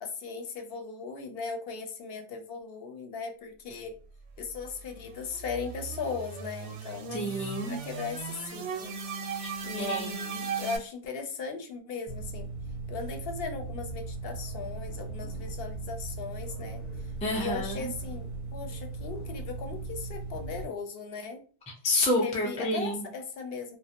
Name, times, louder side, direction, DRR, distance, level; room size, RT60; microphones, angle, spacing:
voice 1, 0.0-4.0 4.4-7.1 7.7-9.0 9.6-12.5 12.9-16.8 17.3-21.4 22.2-23.8, left 5 dB, 70° left, 4 dB, 0.7 m, -38 dB
sound 1, 4.4-10.8, right 5 dB, 80° right, 0.8 m, -37 dB
voice 2, 7.1-7.8 9.4-9.5 9.8-10.1 17.2-17.9 21.7-23.0, left 1 dB, 10° left, -1 dB, 0.3 m, -29 dB
sound 2, 12.1-20.6, right 3 dB, 35° left, 0.7 m, -38 dB
2.4 x 2.0 x 2.7 m, 0.39 s
omnidirectional pair, 1.1 m